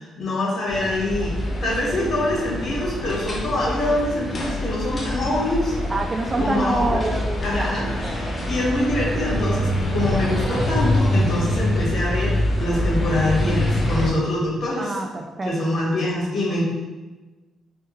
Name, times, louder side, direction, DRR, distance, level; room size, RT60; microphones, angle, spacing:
voice 1, 0.0-1.4 1.6-5.7 6.4-7.0 7.4-15.0 15.4-16.6, left 1 dB, 60° left, -5 dB, 1.4 m, -25 dB
sound 1, 0.7-14.1, left 1 dB, 35° left, 0.8 m, -25 dB
voice 2, 5.9-7.8 8.0-8.3 14.8-15.5, right 2 dB, 30° right, 4 dB, 0.3 m, -26 dB
3.4 x 2.2 x 3.1 m, 1.2 s
cardioid pair, 90°, 0 cm